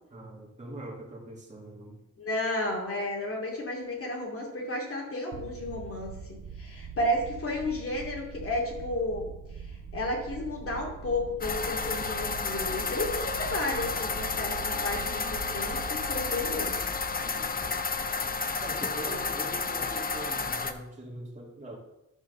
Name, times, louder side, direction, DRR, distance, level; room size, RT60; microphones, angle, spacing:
voice 1, 0.1-2.0 17.2-17.6 18.6-21.8, right 1 dB, 25° right, -4 dB, 2.4 m, -42 dB
voice 2, 2.2-16.8, left 1 dB, 50° left, -1 dB, 2.6 m, -32 dB
sound 1, 5.3-18.6, right 6 dB, 65° right, 0.9 m, -43 dB
sound 2, 11.4-20.7, left 4 dB, 30° left, 0.7 m, -31 dB
11.5 x 4.5 x 6.7 m, 0.93 s
wide cardioid pair, 135°, 29 cm